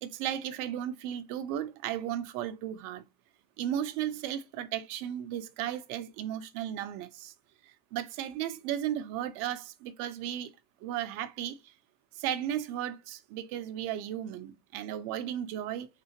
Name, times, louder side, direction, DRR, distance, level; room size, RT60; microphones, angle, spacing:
voice 1, 0.0-3.0 3.6-7.3 7.6-10.5 10.8-11.7 12.1-15.9, right 11 dB, 50° right, 0.6 m, -35 dB
3.6 x 2.7 x 2.9 m
hypercardioid pair, 95°, 21 cm